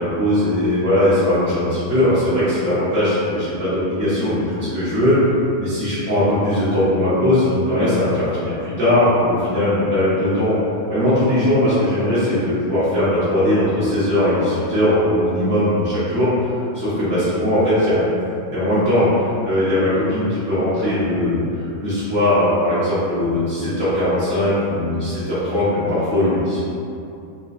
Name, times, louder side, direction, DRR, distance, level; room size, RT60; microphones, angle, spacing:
voice 1, 0.0-5.2 5.5-10.6 10.9-18.1 18.5-21.4 21.8-26.6, left 1 dB, 55° right, -13 dB, 0.8 m, -19 dB
4.1 x 2.5 x 2.4 m, 2.6 s
omnidirectional pair, 2.2 m